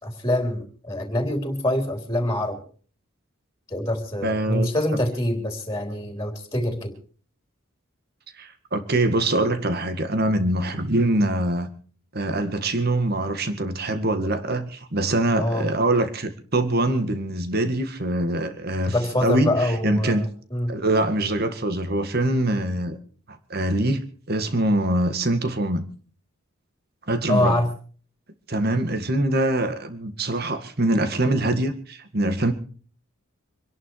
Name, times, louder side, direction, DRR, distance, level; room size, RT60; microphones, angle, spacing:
voice 1, 0.0-2.6 3.7-6.9 15.3-15.7 18.9-20.2 20.5-20.8 27.3-27.7, left 1 dB, 15° left, 3.7 m, -25 dB
voice 2, 4.2-4.7 8.4-11.7 12.1-18.9 19.2-20.3 20.7-23.0 23.5-25.9 27.1-27.6 28.5-32.5, right 1 dB, 50° right, 2.0 m, -24 dB
26.0 x 11.0 x 4.8 m
head